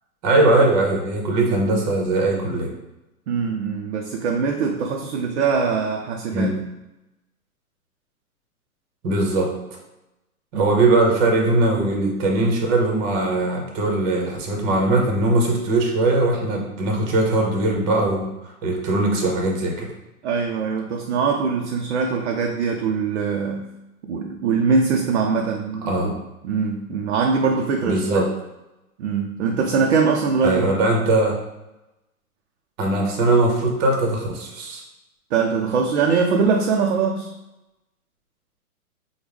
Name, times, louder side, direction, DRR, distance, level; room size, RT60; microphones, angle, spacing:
voice 1, 0.2-2.7 6.3-6.6 9.0-9.5 10.5-18.3 18.6-19.9 25.8-26.1 27.8-28.3 30.4-31.4 32.8-34.8, right 2 dB, 30° right, 0 dB, 0.8 m, -20 dB
voice 2, 3.3-6.5 10.5-10.7 20.2-23.6 24.1-26.2 26.4-28.2 29.0-30.6 35.3-37.3, right 5 dB, 50° right, 1 dB, 0.4 m, -22 dB
4.4 x 2.1 x 3.4 m, 0.96 s
hypercardioid pair, 125°, 46 cm